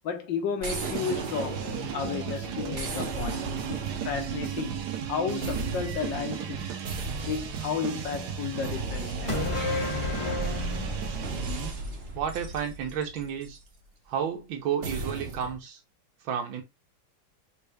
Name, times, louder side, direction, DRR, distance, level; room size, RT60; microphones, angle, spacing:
voice 1, 0.0-1.6 1.9-3.8 4.0-4.8 5.1-6.6 7.3-9.6, left 6 dB, 70° left, 1.6 m, -33 dB
sound 1, 0.6-2.2 2.7-5.1 5.4-6.3 6.8-7.9 8.6-10.5 11.2-13.6 14.8-15.6, right 3 dB, 45° right, 0.8 m, -37 dB
sound 2, 0.8-11.7, right 7 dB, 65° right, 1.2 m, -35 dB
sound 3, 9.3-12.9 13.2-13.3, left 1 dB, 40° left, 0.4 m, -32 dB
voice 2, 12.1-13.6 14.1-15.8 16.2-16.6, right 8 dB, 80° right, 1.7 m, -31 dB
5.5 x 2.7 x 3.4 m
omnidirectional pair, 2.1 m